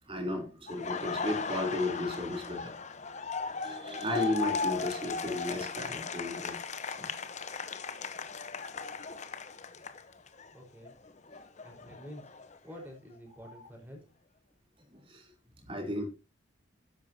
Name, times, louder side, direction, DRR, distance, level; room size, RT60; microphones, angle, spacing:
voice 1, 0.1-2.7 3.6-6.6 6.9-7.1 13.6-13.7 14.9-15.3 15.6-16.1, left 1 dB, 25° right, 3.4 m, -34 dB
Laughter, 0.7-10.5 10.8-12.8, left 4 dB, 35° left, 0.9 m, -37 dB
voice 2, 10.5-10.9 11.6-12.3 12.6-14.0, equal, 10° right, 4.5 m, -48 dB
12.0 x 10.5 x 2.8 m
head